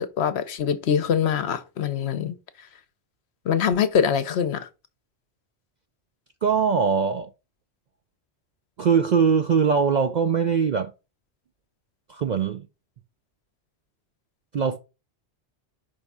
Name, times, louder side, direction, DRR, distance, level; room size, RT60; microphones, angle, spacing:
voice 1, 0.0-2.4 3.4-4.7, left 7 dB, 65° left, 0.9 m, -24 dB
voice 2, 6.4-7.3 8.8-10.9 12.1-12.7 14.5-14.8, right 6 dB, 60° right, 0.4 m, -21 dB
5.4 x 3.5 x 5.3 m
omnidirectional pair, 1.2 m